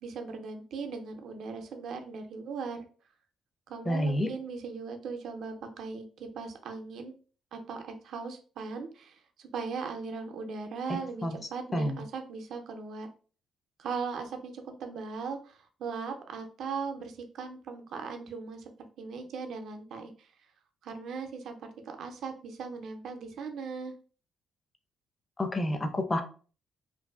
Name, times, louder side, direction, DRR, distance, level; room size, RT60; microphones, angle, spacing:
voice 1, 0.0-2.9 3.7-7.1 7.5-13.1 13.8-18.7 19.0-20.3 20.8-23.9, right 5 dB, 70° right, 5 dB, 0.4 m, -39 dB
voice 2, 3.9-4.3 11.2-11.4 11.7-12.0 25.4-26.2, left 1 dB, 25° left, 6 dB, 0.5 m, -28 dB
2.5 x 2.3 x 2.2 m, 0.39 s
cardioid pair, 90°, 0 cm